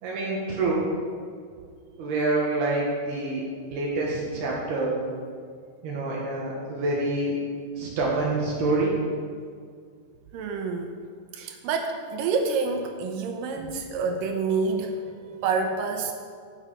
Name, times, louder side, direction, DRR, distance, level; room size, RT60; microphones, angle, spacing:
voice 1, 0.0-0.9 2.0-3.4 3.7-5.0 5.8-7.4 7.8-8.9, right 2 dB, 70° right, -4 dB, 3.4 m, -26 dB
voice 2, 10.3-10.9 11.3-15.0 15.4-16.1, right 4 dB, 85° right, 4 dB, 1.9 m, -27 dB
16.0 x 7.8 x 5.0 m, 2.1 s
omnidirectional pair, 5.0 m